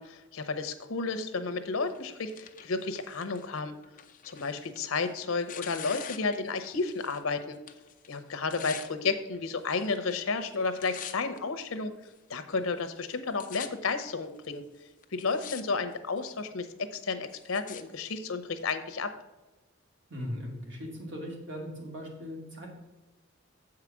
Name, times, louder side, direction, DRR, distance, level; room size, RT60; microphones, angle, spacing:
voice 1, 0.0-3.7 4.2-7.6 8.1-12.0 12.3-14.6 15.1-19.1, left 4 dB, 85° left, 10 dB, 0.8 m, -32 dB
Tearing, 1.8-7.3 7.5-8.9 9.6-10.1 10.4-11.4 12.0-12.1 12.8-12.9 13.1-13.7 14.4-14.5 15.0-15.6 15.9-16.4 16.9-17.8 18.6-18.7, left 9 dB, 40° left, 0.5 m, -45 dB
voice 2, 20.1-22.7, equal, 60° right, -1 dB, 2.3 m, -39 dB
7.6 x 4.8 x 6.0 m, 1.1 s
head